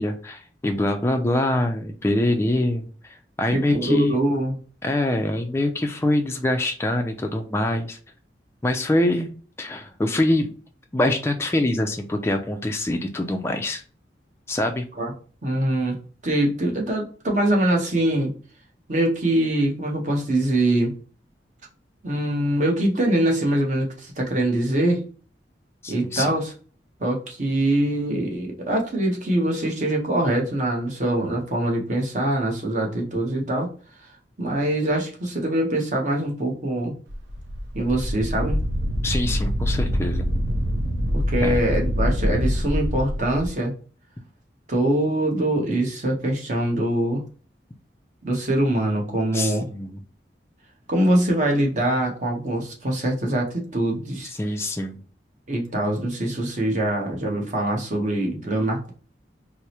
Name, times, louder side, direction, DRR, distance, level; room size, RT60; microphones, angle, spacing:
voice 1, 0.0-4.1 4.8-8.0 8.6-9.3 9.6-10.5 10.9-13.8 14.5-14.8 25.8-26.3 39.0-40.3 41.4-41.6 49.3-50.0 54.3-55.0, left 1 dB, 15° left, 5 dB, 0.3 m, -24 dB
voice 2, 3.5-4.5 15.0-15.1 15.4-18.3 18.9-20.9 22.0-25.0 25.9-26.5 27.0-33.7 34.4-37.0 37.7-38.6 41.1-43.7 44.7-47.2 48.2-49.7 50.9-54.3 55.5-58.9, right 1 dB, 45° right, 0 dB, 0.9 m, -23 dB
Wind, 37.1-43.5, equal, 80° right, 0.6 m, -25 dB
4.6 x 2.0 x 2.8 m, 0.39 s
head